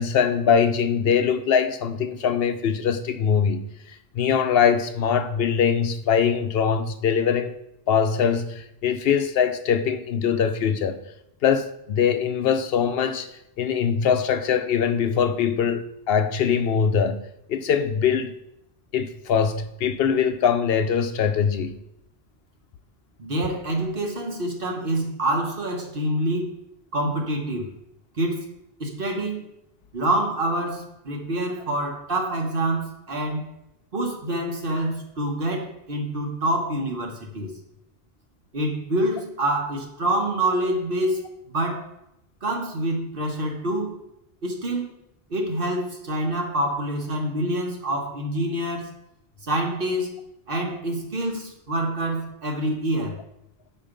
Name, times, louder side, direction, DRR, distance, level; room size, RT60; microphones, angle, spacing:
voice 1, 0.0-3.6 4.1-7.5 7.9-11.0 11.4-13.3 13.6-18.3 18.9-21.8, left 7 dB, 70° left, 0.7 m, -22 dB
voice 2, 23.2-26.6 26.9-27.7 28.2-28.5 28.8-29.5 29.9-33.5 33.9-37.6 38.5-41.2 41.5-41.9 42.4-44.0 44.4-44.9 45.3-48.9 49.4-50.1 50.5-53.2, right 1 dB, 55° right, 1.4 m, -26 dB
7.3 x 4.5 x 5.0 m
omnidirectional pair, 1.1 m